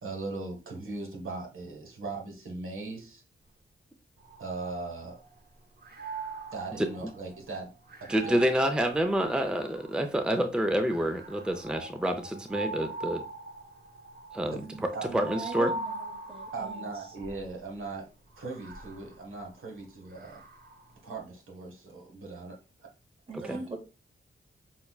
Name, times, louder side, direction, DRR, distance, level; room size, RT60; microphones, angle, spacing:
voice 1, 0.0-3.2 4.4-5.2 6.5-7.7 8.0-8.4 14.5-15.1 16.5-18.1 18.4-20.4 21.0-22.6 23.4-23.8, right 3 dB, 75° right, 1 dB, 1.3 m, -39 dB
sound 1, 4.2-5.4 5.8-10.2 10.9-17.5 18.3-20.9, right 2 dB, 50° right, 0.8 m, -42 dB
voice 2, 8.1-13.2 14.3-14.6 15.1-15.7 23.3-23.6, right 1 dB, 5° right, 7 dB, 0.5 m, -28 dB
voice 3, 15.1-16.9 23.3-23.8, right 3 dB, 25° right, 4 dB, 1.1 m, -40 dB
5.7 x 2.1 x 2.3 m, 0.31 s
cardioid pair, 50°, 21 cm